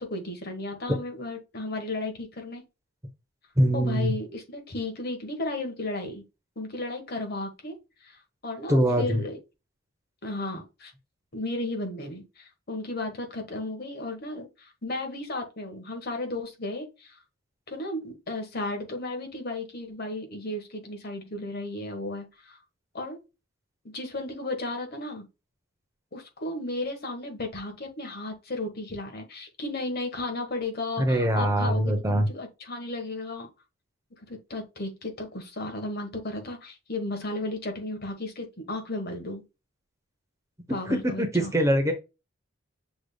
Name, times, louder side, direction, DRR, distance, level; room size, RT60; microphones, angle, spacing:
voice 1, 0.0-2.6 3.7-6.2 6.6-8.2 8.4-9.4 10.2-10.9 11.3-17.1 17.7-22.6 22.9-23.2 23.9-25.3 26.1-33.5 34.3-39.4 40.7-41.5, left 2 dB, 45° left, 1.2 m, -34 dB
voice 2, 3.6-4.1 8.7-9.2 31.0-32.3 40.9-41.9, equal, 15° right, 0.7 m, -23 dB
6.2 x 3.4 x 2.2 m
head